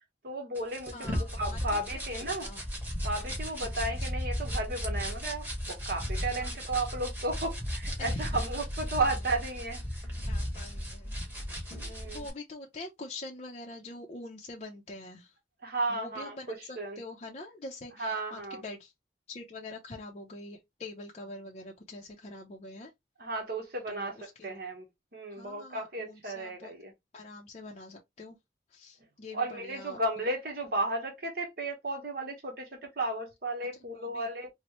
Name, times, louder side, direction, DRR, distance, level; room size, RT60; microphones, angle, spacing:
voice 1, 0.2-2.5 3.0-9.8 11.7-12.2 15.6-17.0 18.0-18.6 23.2-24.2 24.4-24.8 25.1-26.9 29.3-34.5, right 2 dB, 60° right, 1.0 m, -34 dB
sound 1, 0.6-12.3, equal, 10° right, 1.3 m, -35 dB
voice 2, 0.9-1.6 2.4-2.6 6.4-6.6 8.0-8.4 10.3-11.2 11.9-15.4 15.9-18.9 19.3-22.9 23.9-24.6 25.3-26.7 27.1-28.4 28.7-30.0 33.7-34.3, left 2 dB, 40° left, 0.5 m, -45 dB
4.1 x 2.1 x 2.9 m
head